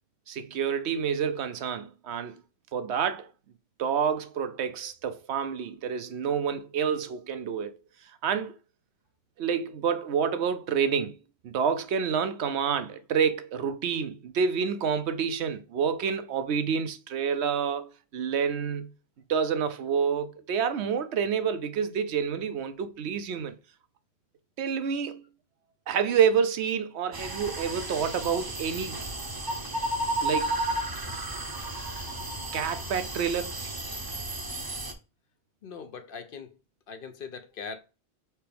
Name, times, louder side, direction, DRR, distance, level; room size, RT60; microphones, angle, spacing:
voice 1, 0.3-2.4 2.7-3.3 3.8-7.8 8.2-8.6 9.4-11.1 11.4-18.9 19.3-23.5 24.6-25.2 25.9-29.0 30.2-30.6 32.5-33.5, right 7 dB, 85° right, 0.9 m, -28 dB
sound 1, 27.1-34.9, right 1 dB, 25° right, 0.7 m, -33 dB
voice 2, 35.6-36.5 36.9-37.8, left 5 dB, 60° left, 0.8 m, -40 dB
4.5 x 3.4 x 3.3 m
omnidirectional pair, 1.1 m